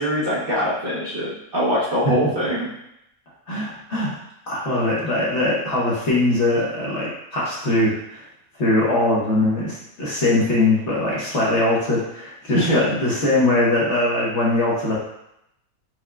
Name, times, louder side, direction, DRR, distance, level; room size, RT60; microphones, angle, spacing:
voice 1, 0.0-2.7 12.5-12.9, equal, 45° right, -9 dB, 0.9 m, -22 dB
voice 2, 3.5-4.1 4.5-8.2 8.6-15.0, left 2 dB, 50° left, -6 dB, 1.2 m, -21 dB
4.7 x 3.5 x 2.3 m, 0.81 s
omnidirectional pair, 1.7 m